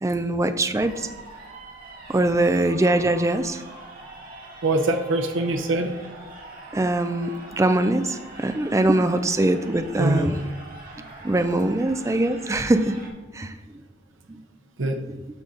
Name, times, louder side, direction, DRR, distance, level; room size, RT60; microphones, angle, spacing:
voice 1, 0.0-1.1 2.1-3.6 6.7-10.3 11.2-13.0 13.3-13.5, right 1 dB, 15° right, 9 dB, 0.4 m, -22 dB
sound 1, 0.8-13.1, right 2 dB, 50° right, 1.7 m, -43 dB
voice 2, 4.6-5.9 9.6-10.3 14.8-15.0, right 2 dB, 80° right, 4 dB, 0.7 m, -24 dB
12.0 x 4.1 x 3.8 m, 1.2 s
head